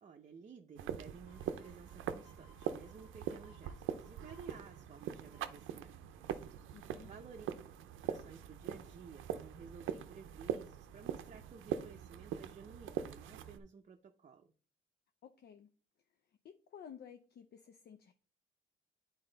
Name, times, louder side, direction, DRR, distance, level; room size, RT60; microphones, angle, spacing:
voice 1, 0.0-6.0 7.0-7.5 8.0-14.5, right 5 dB, 35° right, 0.6 m, -55 dB
sound 1, 0.7-13.6, right 9 dB, 80° right, 0.6 m, -43 dB
sound 2, 1.3-6.8 7.2-7.3, left 5 dB, 80° left, 1.3 m, -68 dB
voice 2, 6.7-7.2 15.2-15.7 16.2-18.1, left 8 dB, 55° left, 0.5 m, -54 dB
8.6 x 4.1 x 3.9 m
cardioid pair, 90°, 20 cm